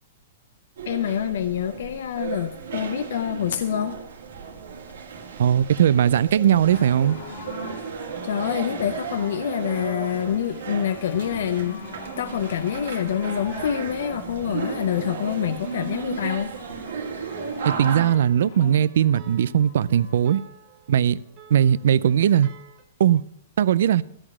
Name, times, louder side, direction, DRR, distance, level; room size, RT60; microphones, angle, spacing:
sound 1, 0.8-18.0, right 6 dB, 85° right, 1.8 m, -35 dB
voice 1, 0.9-4.0 8.2-11.8 12.2-16.5, left 9 dB, 70° left, 0.6 m, -26 dB
voice 2, 5.4-7.2 17.6-20.4 20.9-21.2 21.5-22.5 23.0-23.2 23.6-24.0, right 9 dB, 70° right, 0.4 m, -19 dB
sound 2, 6.7-20.3 21.0-21.1, left 4 dB, 50° left, 1.5 m, -43 dB
sound 3, 14.1-22.8, right 6 dB, 30° right, 1.1 m, -52 dB
13.5 x 5.0 x 7.2 m
hypercardioid pair, 160°, 0 cm